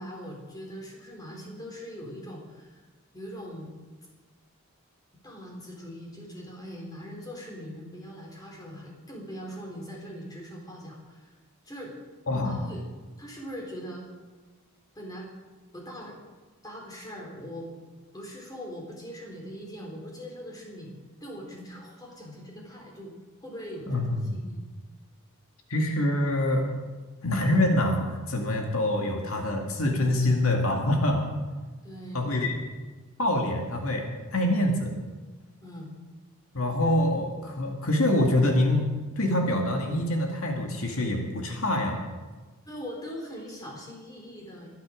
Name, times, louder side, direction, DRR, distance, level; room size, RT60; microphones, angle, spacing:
voice 1, 0.0-2.8 3.1-3.7 5.2-11.4 11.6-11.9 12.4-12.8 13.2-14.1 15.0-15.3 15.7-16.2 16.6-17.7 18.1-20.9 21.2-23.1 23.4-24.6 31.8-32.5 35.6-35.9 42.6-44.7, equal, 15° left, -1 dB, 3.8 m, -41 dB
voice 2, 12.3-12.6 23.9-24.4 25.7-26.8 27.2-31.2 32.1-32.6 33.2-34.9 36.5-42.0, left 1 dB, 70° left, 1 dB, 2.2 m, -25 dB
23.5 x 10.5 x 5.1 m, 1.3 s
head